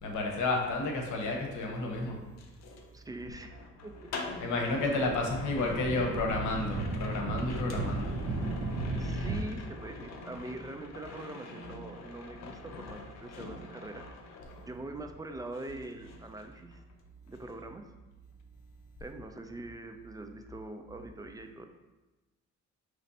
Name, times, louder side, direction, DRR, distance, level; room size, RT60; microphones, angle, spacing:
voice 1, 0.0-2.2 4.4-8.2, left 2 dB, 80° left, 1 dB, 0.9 m, -31 dB
sound 1, 1.2-15.2 15.5-17.0 17.3-17.6, left 3 dB, 65° left, 0.6 m, -47 dB
voice 2, 2.9-3.5 3.8-3.9 4.2-4.6 4.9-5.1 8.9-14.0 14.7-16.8 17.3-17.8 19.0-21.7, right 2 dB, 15° right, 5 dB, 0.3 m, -43 dB
sound 2, 4.7-9.4, right 2 dB, 60° right, 0.6 m, -35 dB
5.0 x 3.2 x 2.7 m, 1.1 s
cardioid pair, 90°, 30 cm